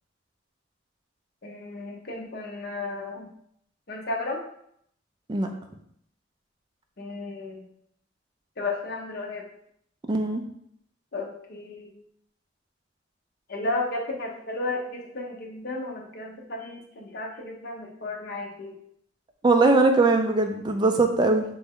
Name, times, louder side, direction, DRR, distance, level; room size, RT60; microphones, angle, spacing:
voice 1, 1.4-3.3 3.9-4.4 7.0-7.7 8.6-9.5 11.1-11.9 13.5-18.8, left 2 dB, 50° left, 0 dB, 0.7 m, -33 dB
voice 2, 10.1-10.4 19.4-21.4, right 3 dB, 25° right, 5 dB, 0.4 m, -20 dB
3.4 x 3.1 x 3.7 m, 0.71 s
head